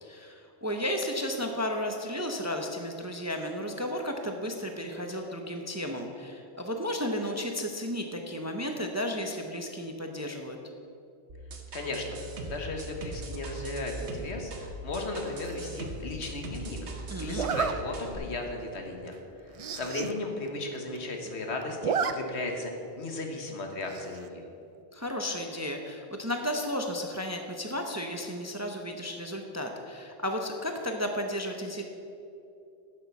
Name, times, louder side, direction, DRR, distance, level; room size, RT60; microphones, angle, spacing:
voice 1, 0.0-10.6 17.1-17.5 24.9-31.8, equal, 15° right, 3 dB, 0.6 m, -33 dB
sound 1, 11.3-18.1, right 2 dB, 75° right, 1.4 m, -40 dB
voice 2, 11.7-16.8 17.2-24.4, left 2 dB, 70° left, 3 dB, 1.5 m, -36 dB
Zipper (clothing), 15.4-15.8 17.3-17.7 18.3-18.5 18.8-18.9 19.1-19.2 19.5-20.1 20.5-20.6 20.8-21.3 21.6-22.1 22.5-22.6 23.9-24.3, right 6 dB, 60° right, 0.3 m, -31 dB
10.0 x 6.7 x 7.0 m, 2.8 s
omnidirectional pair, 1.2 m